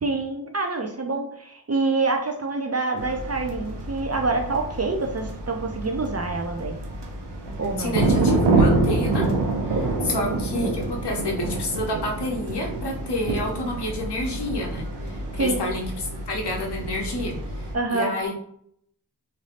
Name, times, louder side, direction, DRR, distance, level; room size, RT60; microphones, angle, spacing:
voice 1, 0.0-6.8 7.6-8.0 10.0-10.4 15.3-15.6 17.7-18.1, right 3 dB, 40° right, 3 dB, 0.5 m, -26 dB
sound 1, 3.0-17.7, right 2 dB, 90° right, 0.6 m, -27 dB
voice 2, 7.8-9.2 9.6-18.3, left 1 dB, 80° left, 0 dB, 0.8 m, -29 dB
3.2 x 2.6 x 2.4 m, 0.69 s
wide cardioid pair, 45°, 40 cm